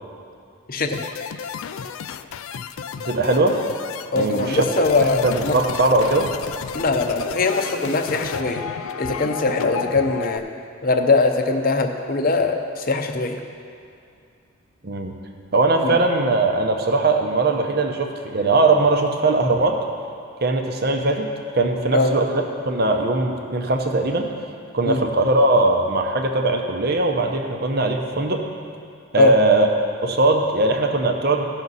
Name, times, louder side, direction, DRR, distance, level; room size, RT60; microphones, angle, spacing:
voice 1, 0.7-1.0 4.1-5.5 6.7-8.6 9.0-10.4 10.8-13.4 15.8-16.0 21.9-22.1 24.9-25.0 29.2-29.3, left 3 dB, 40° left, 5 dB, 0.7 m, -21 dB
sound 1, 0.9-10.4, left 7 dB, 70° left, 0.3 m, -32 dB
voice 2, 3.0-3.6 4.1-4.6 5.1-6.3 14.8-15.1 15.5-19.8 20.4-21.3 21.5-24.3 24.7-28.4 29.1-29.7 30.0-31.4, right 2 dB, 45° right, 4 dB, 0.8 m, -20 dB
16.0 x 6.1 x 4.1 m, 2.5 s
head